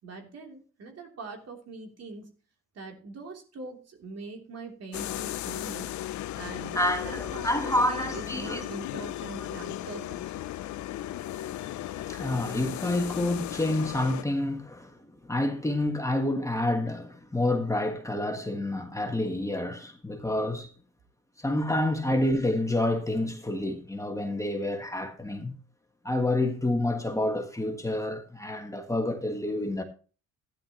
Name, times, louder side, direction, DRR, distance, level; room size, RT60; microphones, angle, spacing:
voice 1, 0.0-2.3 2.7-5.9 6.4-6.8 7.0-10.5, right 3 dB, 55° right, 3.3 m, -42 dB
sound 1, 4.9-14.2, left 13 dB, 70° left, 0.6 m, -36 dB
voice 2, 6.7-8.6 10.9-20.7 21.4-25.5 26.0-29.8, left 1 dB, 10° left, 1.6 m, -29 dB
13.0 x 10.5 x 3.0 m
cardioid pair, 90°, 30 cm